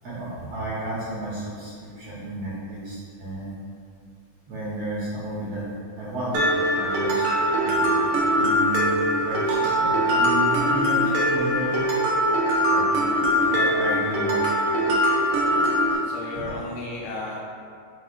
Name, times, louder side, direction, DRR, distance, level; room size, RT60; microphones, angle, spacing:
voice 1, 0.0-3.5 4.5-5.6 6.0-7.3 7.6-8.0 8.4-11.9 12.7-12.9 13.5-14.4 16.3-16.5, right 1 dB, 60° right, -8 dB, 1.8 m, -32 dB
Mallet percussion, 6.3-15.9, equal, 85° right, 1.2 m, -22 dB
voice 2, 16.0-17.4, left 2 dB, 80° left, -3 dB, 2.1 m, -34 dB
5.5 x 3.7 x 5.1 m, 2.2 s
omnidirectional pair, 4.0 m